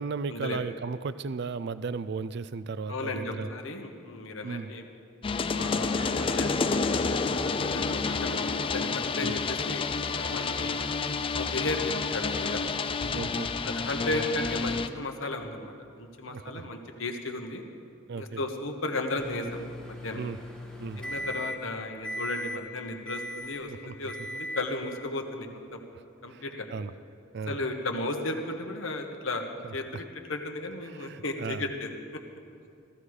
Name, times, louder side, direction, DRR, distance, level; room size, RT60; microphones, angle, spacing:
voice 1, 0.0-3.5 4.4-4.7 9.2-9.4 13.1-13.5 16.3-16.7 18.1-18.4 20.1-20.4 20.8-21.0 23.7-24.0 26.3-26.4 26.7-26.9 27.3-27.6 29.6-30.0 30.9-31.7, right 4 dB, 55° right, 15 dB, 0.4 m, -35 dB
voice 2, 2.9-4.8 5.5-10.8 11.3-12.6 13.6-17.6 18.2-19.6 19.9-20.2 21.0-25.8 26.2-26.7 27.5-29.5 29.7-31.9, left 2 dB, 70° left, 4 dB, 1.3 m, -35 dB
sound 1, 5.2-14.9, left 4 dB, 25° left, 0.4 m, -29 dB
Alarm, 5.9-13.7, right 1 dB, 80° right, 2.0 m, -46 dB
Microwave oven, 19.1-21.7 22.0-22.6 23.1-23.7 24.1-24.7, equal, 5° left, 1.5 m, -38 dB
15.0 x 14.0 x 4.9 m, 2.4 s
head